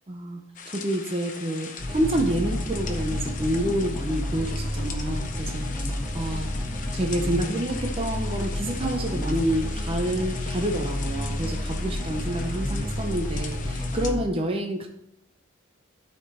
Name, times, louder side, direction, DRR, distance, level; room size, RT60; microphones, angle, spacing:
voice 1, 0.1-6.5 6.9-14.9, right 1 dB, 30° right, 3 dB, 0.7 m, -28 dB
sound 1, 0.5-14.1, left 6 dB, 40° left, 0.9 m, -41 dB
sound 2, 1.8-14.2, left 1 dB, 15° left, 2.3 m, -30 dB
12.5 x 4.4 x 4.2 m, 0.76 s
head